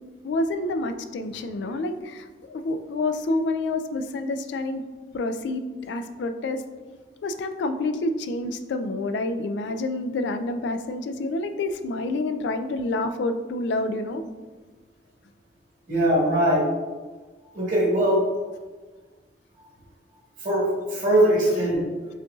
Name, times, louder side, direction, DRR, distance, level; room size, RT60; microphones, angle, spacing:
voice 1, 0.2-4.8 5.1-6.6 7.2-14.2, left 2 dB, 70° left, 8 dB, 0.3 m, -28 dB
voice 2, 15.9-16.6 17.5-18.2 20.4-22.1, right 1 dB, 50° right, -6 dB, 1.5 m, -21 dB
5.6 x 2.6 x 2.3 m, 1.3 s
head